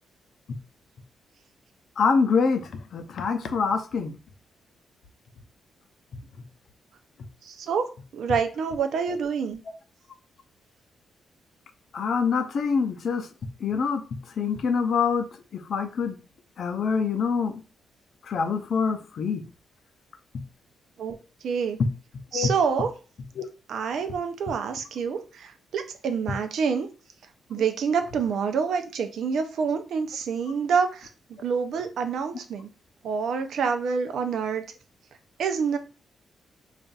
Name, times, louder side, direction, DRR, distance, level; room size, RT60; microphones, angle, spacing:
voice 1, 2.0-4.1 11.9-13.3 13.6-14.0 14.4-15.2 15.5-16.2 16.6-17.5 18.3-19.4 22.3-22.5 23.4-23.5, left 5 dB, 55° left, 7 dB, 0.5 m, -25 dB
voice 2, 7.5-7.9 8.1-9.6 21.0-21.2 21.4-21.8 22.3-22.9 23.7-25.5 25.7-26.9 27.5-31.1 31.4-32.7 33.0-34.6 35.4-35.8, right 6 dB, 70° right, 7 dB, 0.5 m, -27 dB
5.3 x 2.4 x 2.4 m, 0.35 s
cardioid pair, 135°, 0 cm